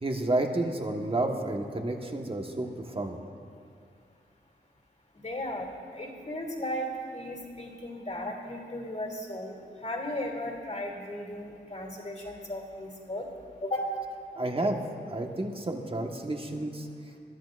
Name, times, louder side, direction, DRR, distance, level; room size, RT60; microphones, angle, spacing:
voice 1, 0.0-3.2 14.3-14.8 15.0-16.9, right 2 dB, 30° right, 2 dB, 1.4 m, -30 dB
voice 2, 5.2-13.3 13.6-13.9, left 1 dB, 35° left, 0 dB, 2.8 m, -36 dB
22.5 x 12.0 x 2.5 m, 2.3 s
cardioid pair, 60°, 19 cm